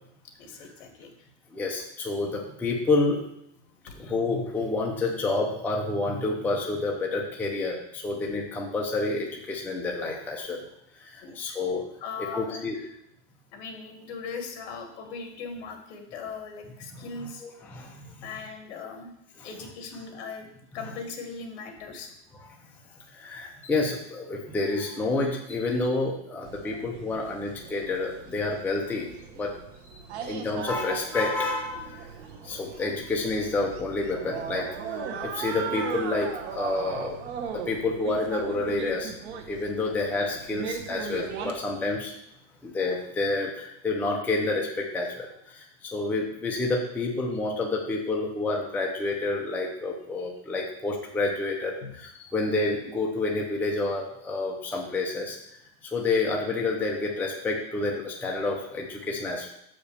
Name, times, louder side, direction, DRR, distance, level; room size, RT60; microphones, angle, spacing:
voice 1, 0.4-1.1 3.9-4.1 11.2-11.6 12.0-12.9 13.5-17.4 18.2-19.1 19.4-20.5 20.7-22.1 51.8-51.9, left 5 dB, 60° left, 4 dB, 1.8 m, -39 dB
voice 2, 1.5-3.2 3.9-10.6 11.0-11.8 12.2-12.8 16.9-18.1 19.4-19.5 23.1-29.5 29.8-29.9 30.2-32.1 32.4-34.7 35.2-37.2 37.5-39.1 39.5-42.1 42.6-55.4 55.9-59.5, left 3 dB, 5° left, -1 dB, 0.6 m, -29 dB
sound 1, 26.4-41.5, right 6 dB, 65° right, 1.3 m, -38 dB
6.6 x 5.1 x 6.8 m, 0.75 s
supercardioid pair, 160°, 36 cm